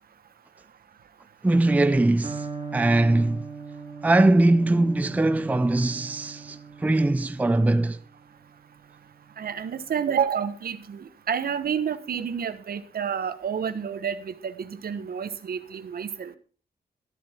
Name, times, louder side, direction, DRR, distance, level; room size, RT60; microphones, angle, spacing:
voice 1, 1.4-2.5 2.7-3.4 4.0-8.0, right 2 dB, 10° right, 0.5 m, -21 dB
Electric guitar, 2.2-10.1, right 5 dB, 30° right, 3.1 m, -41 dB
voice 2, 9.4-16.3, right 7 dB, 65° right, 1.2 m, -29 dB
13.0 x 12.0 x 4.4 m
wide cardioid pair, 170°, 17 cm